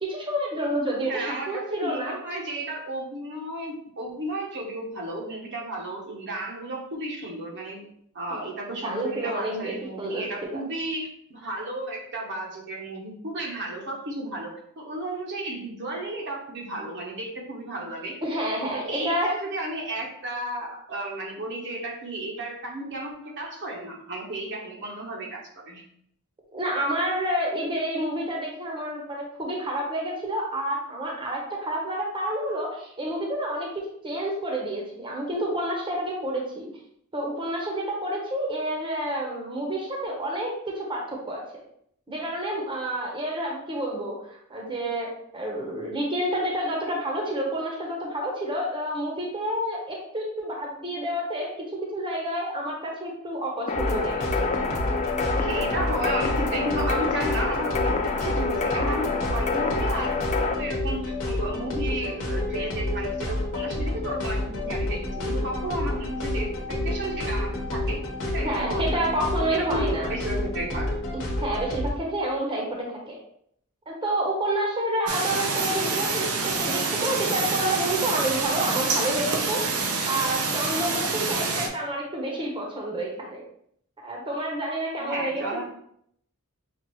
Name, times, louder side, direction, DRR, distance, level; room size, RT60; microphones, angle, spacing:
voice 1, 0.0-2.1 8.3-8.4 8.8-9.7 10.0-10.5 18.2-19.3 26.5-36.7 37.1-41.4 42.1-54.5 68.4-70.1 71.4-73.2 73.9-79.6 80.1-83.4 84.0-85.6, right 1 dB, 25° right, -1 dB, 0.8 m, -29 dB
voice 2, 1.0-7.9 8.1-18.2 18.6-25.8 55.3-69.2 69.5-70.9 85.0-85.6, right 1 dB, 55° right, -1 dB, 0.9 m, -33 dB
sound 1, 53.7-71.9, left 1 dB, 65° left, 1.0 m, -29 dB
sound 2, 53.7-60.5, left 4 dB, 30° left, 0.4 m, -28 dB
sound 3, 75.1-81.7, right 4 dB, 90° right, 0.6 m, -27 dB
5.9 x 2.4 x 3.0 m, 0.69 s
head